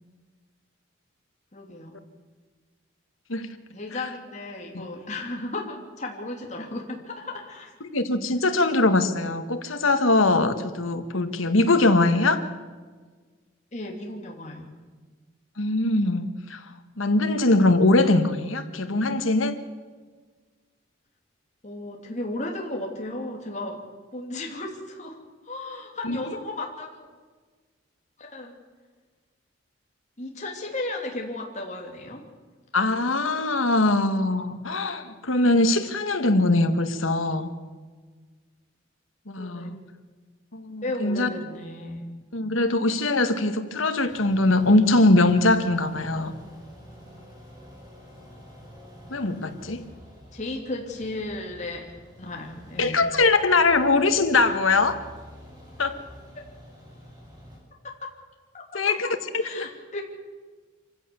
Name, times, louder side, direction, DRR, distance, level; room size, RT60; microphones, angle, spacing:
voice 1, 1.5-2.0 3.7-7.7 13.7-14.7 21.6-23.8 24.1-27.0 28.2-28.5 30.2-32.2 39.4-39.7 40.8-42.0 50.3-51.9 52.2-53.0 58.5-58.6 59.4-60.0, left 2 dB, 35° left, 0 dB, 3.0 m, -34 dB
voice 2, 7.8-12.4 15.6-16.7 17.0-19.6 26.0-26.2 32.7-37.5 39.3-39.8 40.5-41.3 42.3-46.3 49.1-49.8 52.8-55.0 55.8-56.0 58.7-59.1 59.5-59.7, left 2 dB, 90° left, 9 dB, 1.8 m, -22 dB
sound 1, 44.1-57.6, equal, 20° right, 6.1 m, -47 dB
26.5 x 16.0 x 7.1 m, 1.5 s
head